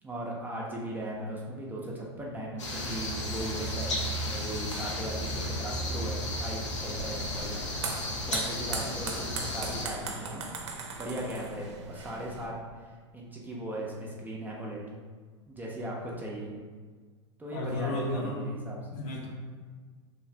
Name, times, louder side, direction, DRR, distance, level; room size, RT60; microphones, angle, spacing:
voice 1, 0.0-7.6 8.3-10.4 10.7-14.8 15.5-16.5 17.4-18.8, right 1 dB, 10° right, -3 dB, 0.4 m, -38 dB
sound 1, 2.6-9.9, left 1 dB, 85° left, 0.6 m, -34 dB
sound 2, 6.7-12.5, right 4 dB, 75° right, 0.5 m, -39 dB
voice 2, 17.5-18.4 18.9-19.3, left 2 dB, 50° left, -1 dB, 0.7 m, -33 dB
2.7 x 2.4 x 3.1 m, 1.5 s
hypercardioid pair, 95°, 15 cm